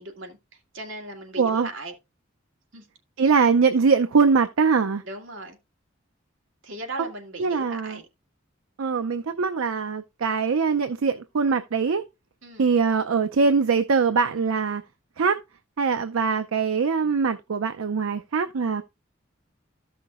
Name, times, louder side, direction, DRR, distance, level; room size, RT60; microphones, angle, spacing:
voice 1, 0.0-1.9 2.7-2.9 5.0-5.6 6.6-8.1 12.4-12.7, right 2 dB, 70° right, 2.0 m, -38 dB
voice 2, 3.2-5.0 7.4-8.0 8.8-12.0 12.6-14.8 15.2-15.4 15.8-18.8, right 5 dB, 85° right, 0.5 m, -22 dB
14.5 x 5.8 x 2.4 m
head